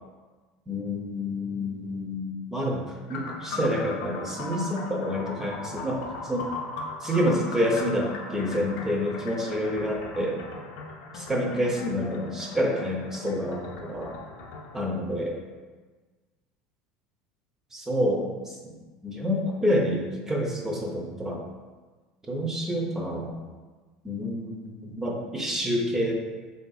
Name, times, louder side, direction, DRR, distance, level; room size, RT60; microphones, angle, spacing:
voice 1, 0.7-6.5 7.0-10.4 11.3-14.2 14.7-15.4 17.7-18.6 19.0-21.4 22.3-23.3 24.0-26.1, equal, 15° right, 0 dB, 0.6 m, -28 dB
sound 1, 3.1-14.8, left 3 dB, 70° left, 0.6 m, -38 dB
3.4 x 2.6 x 4.0 m, 1.3 s
supercardioid pair, 105°, 3 cm